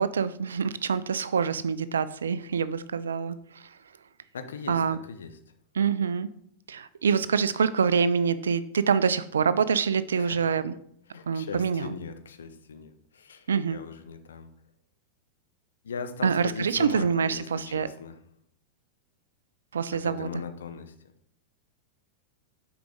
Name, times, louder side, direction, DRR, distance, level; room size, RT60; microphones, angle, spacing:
voice 1, 0.0-3.4 4.7-5.0 5.8-6.3 6.7-10.7 11.3-11.9 13.5-13.8 16.2-17.9 19.7-20.3, right 6 dB, 70° right, 15 dB, 0.4 m, -25 dB
voice 2, 4.3-5.4 10.2-10.5 11.1-14.5 15.8-18.2 19.9-20.9, left 5 dB, 65° left, 8 dB, 0.7 m, -39 dB
6.8 x 4.9 x 3.7 m, 0.69 s
figure-of-eight pair, 90°, 0 cm